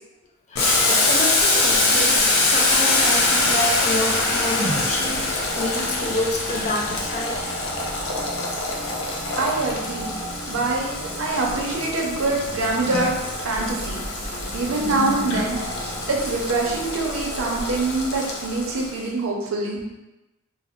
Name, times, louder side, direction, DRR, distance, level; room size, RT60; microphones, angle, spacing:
Boiling, 0.5-19.0, left 2 dB, 85° left, 0.5 m, -24 dB
voice 1, 0.5-2.2 2.5-7.5, left 1 dB, 35° left, -1 dB, 0.4 m, -28 dB
sound 1, 0.6-18.3, equal, 60° left, 0.8 m, -38 dB
sound 2, 1.4-16.9, right 1 dB, 35° right, 0.7 m, -41 dB
voice 2, 9.3-10.1 10.5-13.1 13.4-14.0 14.5-15.6 16.1-19.8, right 3 dB, 85° right, 0 dB, 0.6 m, -24 dB
2.6 x 2.0 x 3.6 m, 1.0 s
head